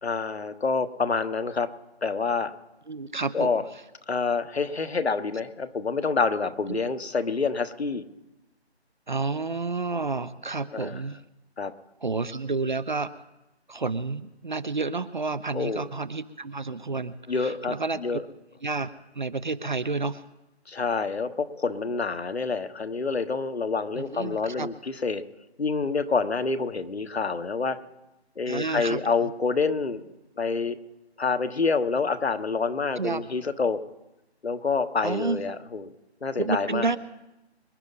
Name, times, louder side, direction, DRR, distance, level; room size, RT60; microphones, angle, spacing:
voice 1, 0.0-1.7 2.0-2.5 3.3-3.6 4.1-8.0 10.7-11.0 11.6-11.7 15.5-15.9 17.3-18.2 20.7-25.2 25.6-27.8 28.4-30.1 30.4-30.8 31.2-33.8 34.4-35.9 36.2-36.9, left 4 dB, 70° left, 10 dB, 1.4 m, -27 dB
voice 2, 2.9-3.6 6.7-6.8 9.1-11.2 12.0-13.1 13.7-18.1 18.6-18.9 19.1-20.2 24.0-24.7 28.5-29.3 33.0-33.2 35.0-35.4 36.4-37.0, right 3 dB, 45° right, 16 dB, 0.7 m, -30 dB
25.5 x 10.5 x 4.1 m, 0.96 s
figure-of-eight pair, 170°, 33 cm